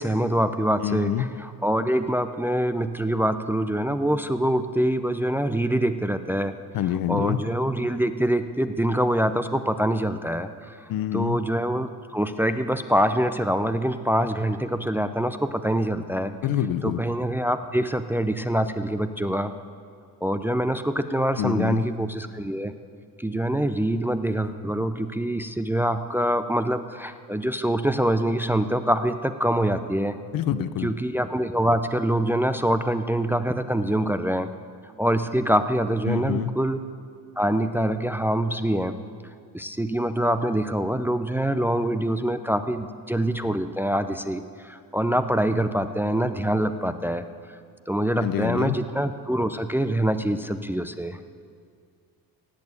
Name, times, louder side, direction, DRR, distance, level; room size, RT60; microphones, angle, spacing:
voice 1, 0.0-6.5 7.1-16.3 16.8-19.5 20.2-22.7 23.2-30.2 30.8-34.5 35.0-36.8 37.4-38.9 39.5-47.2 47.9-51.3, right 1 dB, 5° right, 9 dB, 0.5 m, -25 dB
voice 2, 0.8-1.3 6.7-7.4 10.9-11.4 16.4-17.0 21.4-21.8 30.3-30.9 36.1-36.5 48.2-48.8, left 11 dB, 65° left, 14 dB, 0.7 m, -26 dB
17.5 x 6.8 x 8.4 m, 2.2 s
cardioid pair, 100°, 37 cm